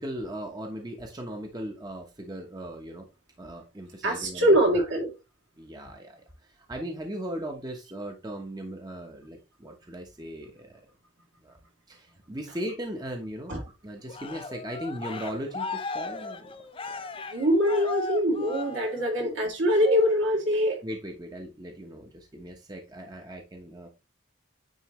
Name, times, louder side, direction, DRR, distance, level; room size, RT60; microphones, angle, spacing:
voice 1, 0.0-3.1 3.4-4.9 5.6-10.8 11.4-11.6 11.9-13.5 13.8-16.5 16.8-17.0 20.8-23.9, equal, 20° right, 0.9 m, -38 dB
voice 2, 4.0-5.1 13.5-13.6 17.3-20.8, equal, 65° right, 2.7 m, -23 dB
Cheering, 14.1-19.3 19.8-20.2, left 4 dB, 30° left, 0.6 m, -37 dB
9.5 x 3.9 x 3.1 m
head